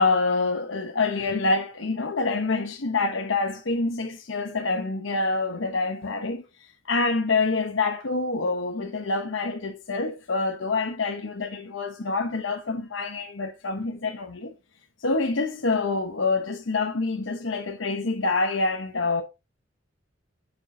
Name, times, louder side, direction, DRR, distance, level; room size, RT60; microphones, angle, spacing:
voice 1, 0.0-6.4 6.9-14.5 15.0-19.2, left 3 dB, 80° left, 1.0 m, -26 dB
8.9 x 6.2 x 2.7 m
head